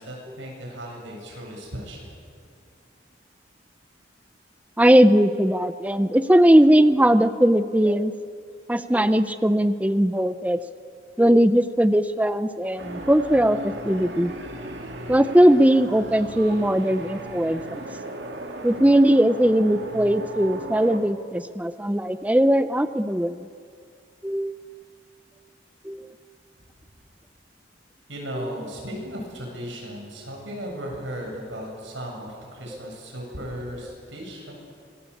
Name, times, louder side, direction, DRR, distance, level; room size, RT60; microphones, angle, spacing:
voice 1, 0.0-2.1 28.1-34.6, equal, 90° right, 0 dB, 7.9 m, -36 dB
voice 2, 4.8-8.1 8.7-10.6 11.2-14.3 15.1-17.8 18.6-23.5 24.2-24.6 25.8-26.1 28.4-28.5, right 1 dB, 10° right, 11 dB, 0.5 m, -19 dB
sound 1, 12.8-21.0, right 1 dB, 70° right, 3.0 m, -36 dB
25.5 x 20.0 x 8.5 m, 2.3 s
head